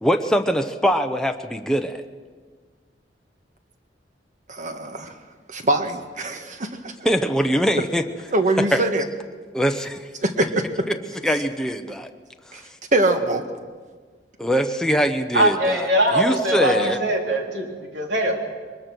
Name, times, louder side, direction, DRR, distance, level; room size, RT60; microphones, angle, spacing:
voice 1, 0.0-2.0 7.0-8.0 8.6-8.9 9.5-10.0 10.9-11.0 11.2-12.1 14.4-17.0, equal, 5° left, 5 dB, 0.8 m, -22 dB
voice 2, 4.5-5.1 5.5-6.9 8.3-9.1 10.2-10.7 12.5-12.6 12.9-13.4, right 2 dB, 45° right, 6 dB, 1.6 m, -23 dB
voice 3, 15.3-18.3, right 1 dB, 80° right, 1 dB, 3.3 m, -21 dB
22.5 x 20.5 x 6.2 m, 1.5 s
head